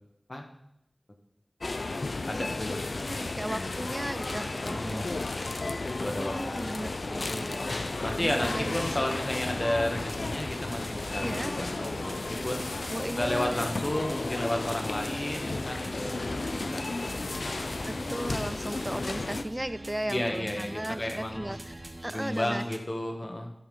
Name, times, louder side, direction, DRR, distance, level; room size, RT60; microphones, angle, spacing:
sound 1, 1.6-19.4, left 2 dB, 90° left, 0.5 m, -33 dB
voice 1, 2.3-3.8 4.6-5.2 6.0-7.1 8.0-12.7 13.2-17.4 20.1-21.6 22.1-23.5, left 1 dB, 45° left, 3 dB, 1.6 m, -33 dB
voice 2, 3.0-5.1 6.2-7.7 8.2-8.9 11.2-11.5 12.9-13.6 17.9-21.7 22.0-22.6, right 1 dB, 20° right, 13 dB, 0.5 m, -36 dB
sound 2, 8.0-22.8, right 1 dB, 40° right, 1.1 m, -44 dB
12.5 x 5.3 x 5.5 m, 0.80 s
wide cardioid pair, 60°, 0 cm